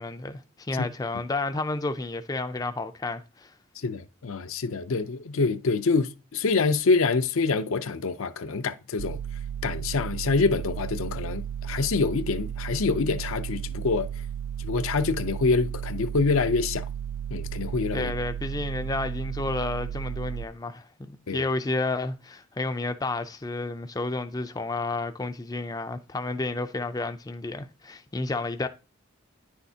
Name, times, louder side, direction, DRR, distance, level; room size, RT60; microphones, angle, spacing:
voice 1, 0.0-3.5 17.9-20.9 21.3-28.7, left 2 dB, 15° left, 0.4 m, -31 dB
voice 2, 3.8-9.2 9.6-14.1 14.6-16.9 17.3-18.1 21.3-21.4, left 4 dB, 75° left, 0.5 m, -26 dB
sound 1, 9.0-20.4, right 9 dB, 80° right, 0.3 m, -34 dB
9.8 x 6.4 x 2.8 m
head